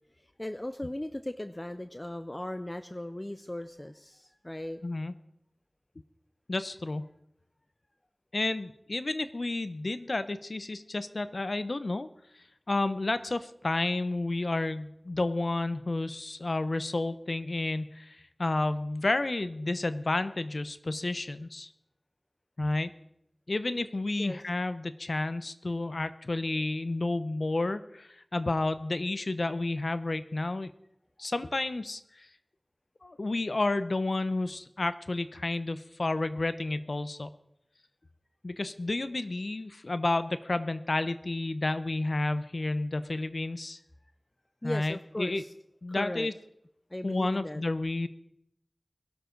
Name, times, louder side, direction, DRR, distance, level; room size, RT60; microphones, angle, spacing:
voice 1, 0.1-4.8 24.2-24.4 44.6-45.5 45.9-46.3 46.9-47.6, left 1 dB, 30° left, 10 dB, 0.6 m, -38 dB
voice 2, 4.8-5.1 6.5-7.1 8.3-12.1 12.7-21.7 22.6-22.9 23.5-30.7 31.2-32.3 33.0-37.3 38.4-43.8 44.6-45.4 45.8-46.3 47.0-48.1, left 2 dB, 75° left, 12 dB, 0.8 m, -31 dB
21.5 x 12.0 x 3.9 m, 0.78 s
wide cardioid pair, 50°, 0 cm